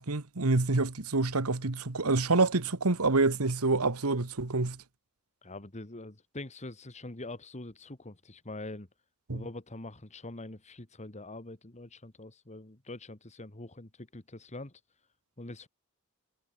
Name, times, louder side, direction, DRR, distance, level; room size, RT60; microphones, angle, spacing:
voice 1, 0.0-4.8 9.3-9.4, right 3 dB, 75° right, 1.5 m, -27 dB
voice 2, 5.4-8.9 9.3-14.8 15.4-15.7, left 2 dB, 30° left, 1.9 m, -44 dB
head